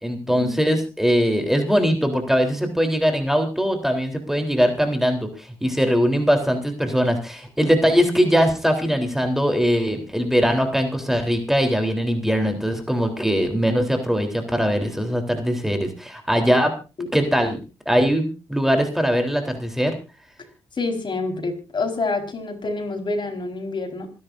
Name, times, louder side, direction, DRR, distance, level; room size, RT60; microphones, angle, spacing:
voice 1, 0.0-16.7 17.1-17.6 17.9-19.9, equal, 5° right, 5 dB, 3.7 m, -21 dB
voice 2, 20.8-24.1, left 3 dB, 45° left, 4 dB, 4.7 m, -27 dB
26.0 x 11.0 x 2.7 m, 0.31 s
supercardioid pair, 50°, 11 cm